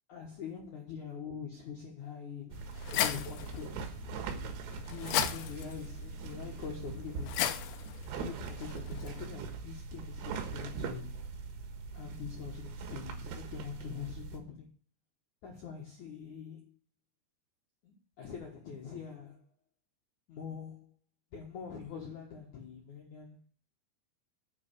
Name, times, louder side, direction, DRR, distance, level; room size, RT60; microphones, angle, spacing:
voice 1, 0.1-2.6 2.9-3.9 4.9-7.4 8.2-11.1 11.9-14.7 15.4-16.8 17.8-19.4 20.3-20.9 21.3-23.4, left 7 dB, 70° left, 1.8 m, -44 dB
sound 1, 2.5-9.3, left 11 dB, 90° left, 2.3 m, -37 dB
sound 2, 2.5-14.4, right 5 dB, 85° right, 4.2 m, -41 dB
8.6 x 7.3 x 8.3 m
omnidirectional pair, 5.9 m